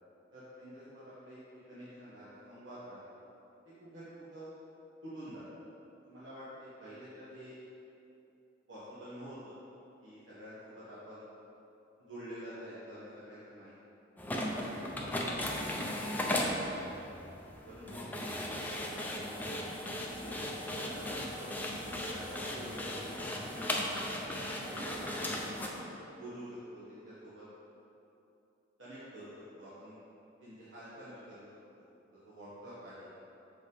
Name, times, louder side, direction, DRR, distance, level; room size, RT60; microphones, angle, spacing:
voice 1, 0.3-1.4 1.7-3.0 3.8-4.5 5.0-5.4 6.1-7.6 8.7-9.5 10.0-11.2 12.0-13.7 14.3-15.4 15.8-16.9 17.6-19.4 20.8-21.5 22.0-24.2 24.7-25.8 26.1-27.5 28.8-30.0 30.4-31.4 31.8-31.9 32.2-33.1, equal, 80° right, -11 dB, 1.5 m, -48 dB
sound 1, 14.2-25.7, left 1 dB, 10° left, 0.5 m, -37 dB
6.9 x 5.1 x 4.1 m, 2.8 s
head